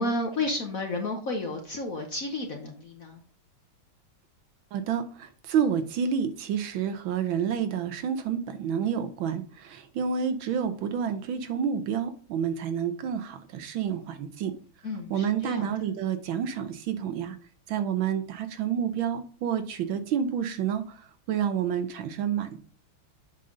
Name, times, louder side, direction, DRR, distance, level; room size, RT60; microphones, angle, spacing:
voice 1, 0.0-3.2 14.8-15.8, left 2 dB, 55° left, 3 dB, 1.0 m, -32 dB
voice 2, 4.7-14.5 15.1-17.4 17.7-20.8 21.3-22.6, right 8 dB, 70° right, 9 dB, 1.4 m, -29 dB
7.7 x 5.4 x 3.7 m, 0.41 s
omnidirectional pair, 2.4 m